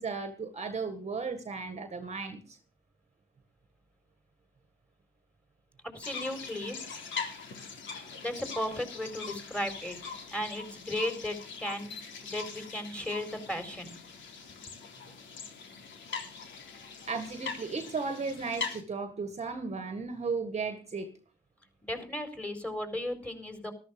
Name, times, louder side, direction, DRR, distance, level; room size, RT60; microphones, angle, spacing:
voice 1, 0.0-2.6 17.1-21.1, right 4 dB, 35° right, 9 dB, 1.7 m, -35 dB
voice 2, 5.9-6.8 7.9-11.9 12.2-14.0 21.8-23.7, left 1 dB, 5° left, 7 dB, 4.4 m, -35 dB
sound 1, 6.0-18.8, left 5 dB, 70° left, 3.4 m, -42 dB
13.5 x 13.0 x 5.2 m, 0.37 s
cardioid pair, 90°, 20 cm